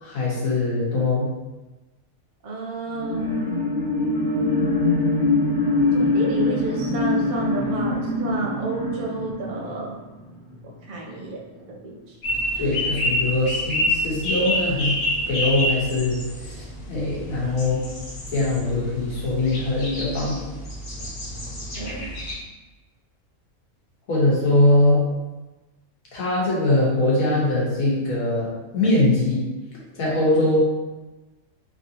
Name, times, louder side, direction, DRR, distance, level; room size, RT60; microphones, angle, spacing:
voice 1, 0.0-1.3 12.6-14.9 15.3-17.8 18.3-20.5 24.1-25.0 26.1-28.5 28.7-29.4 29.9-30.6, left 2 dB, 80° left, -6 dB, 1.4 m, -22 dB
voice 2, 2.4-3.2 5.9-9.9 10.9-11.4 11.7-12.2 21.8-22.1, right 3 dB, 50° right, -3 dB, 0.6 m, -30 dB
sound 1, 2.9-10.7 11.1-11.2, left 2 dB, 25° left, 1.1 m, -23 dB
sound 2, 12.2-22.3, left 1 dB, 50° left, 0.9 m, -28 dB
3.2 x 2.7 x 2.7 m, 1.1 s
omnidirectional pair, 1.4 m